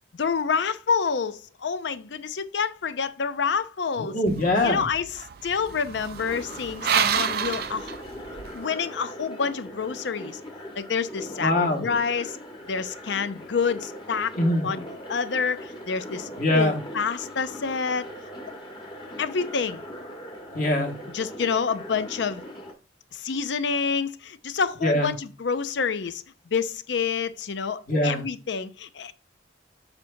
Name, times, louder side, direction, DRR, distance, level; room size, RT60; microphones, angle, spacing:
voice 1, 0.1-4.2 4.6-5.1 5.4-7.9 8.5-10.4 10.8-12.4 12.7-14.3 14.6-14.8 15.1-16.3 16.5-18.0 19.2-19.8 21.1-22.4 23.1-29.1, left 5 dB, 70° left, 0.5 m, -28 dB
voice 2, 4.0-4.8 11.4-11.8 14.4-14.6 16.4-16.8 20.5-20.9 24.8-25.1 27.9-28.2, left 1 dB, 45° left, 1.7 m, -23 dB
sound 1, 4.3-8.6, right 8 dB, 55° right, 0.4 m, -29 dB
sound 2, 6.2-22.7, equal, 25° left, 1.3 m, -40 dB
7.8 x 5.7 x 2.7 m
head